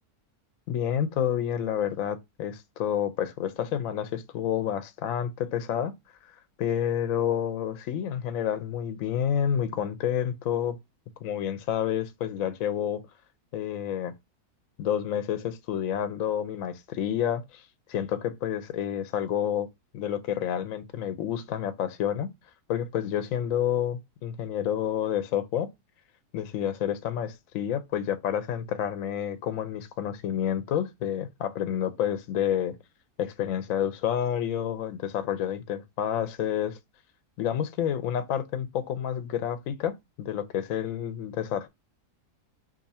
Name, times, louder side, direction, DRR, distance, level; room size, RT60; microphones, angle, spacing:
voice 1, 0.7-5.9 6.6-10.8 11.2-13.0 13.5-14.1 14.8-19.7 19.9-22.3 22.7-25.7 26.3-32.8 33.2-36.8 37.4-41.7, left 9 dB, 70° left, 0.9 m, -29 dB
2.7 x 2.5 x 4.0 m
omnidirectional pair, 1.7 m